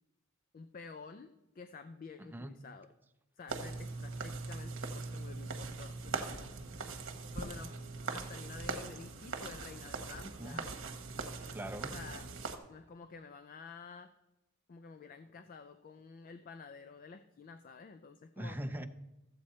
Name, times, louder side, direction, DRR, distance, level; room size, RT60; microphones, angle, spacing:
voice 1, 0.5-2.9 3.4-6.5 7.3-7.8 8.1-10.7 11.9-12.3 12.7-14.1 14.7-18.6, left 4 dB, 45° left, 10 dB, 0.4 m, -50 dB
voice 2, 2.2-2.5 10.2-10.6 11.5-11.9 18.4-18.9, right 1 dB, 10° right, 8 dB, 0.5 m, -41 dB
sound 1, 3.5-12.6, right 3 dB, 65° right, 1.1 m, -41 dB
14.0 x 7.7 x 4.2 m, 0.97 s
head